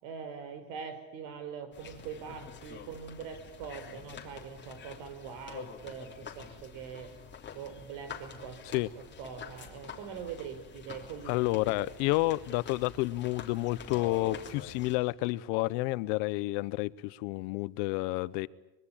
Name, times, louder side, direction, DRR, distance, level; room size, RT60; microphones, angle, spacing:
voice 1, 0.0-7.1 7.5-8.6 9.0-11.9, right 7 dB, 80° right, 4.9 m, -43 dB
sound 1, 1.7-15.0, left 6 dB, 20° left, 3.3 m, -47 dB
voice 2, 11.3-18.5, left 20 dB, 80° left, 1.0 m, -30 dB
24.5 x 22.5 x 8.8 m
cardioid pair, 150°, 47 cm